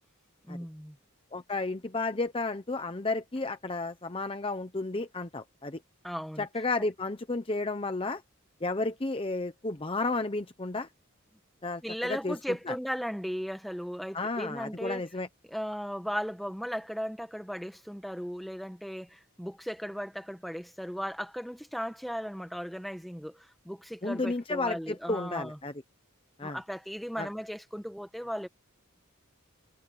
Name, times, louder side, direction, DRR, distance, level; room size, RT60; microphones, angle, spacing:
voice 1, 0.4-1.0 6.0-6.5 11.8-15.0 15.5-25.6 26.4-28.5, equal, ahead, 1.6 m, -36 dB
voice 2, 1.3-5.8 6.4-8.2 8.6-10.9 11.6-12.4 12.7-12.8 14.1-15.3 24.0-25.7 26.4-26.6 27.2-27.3, left 3 dB, 25° left, 0.8 m, -32 dB
head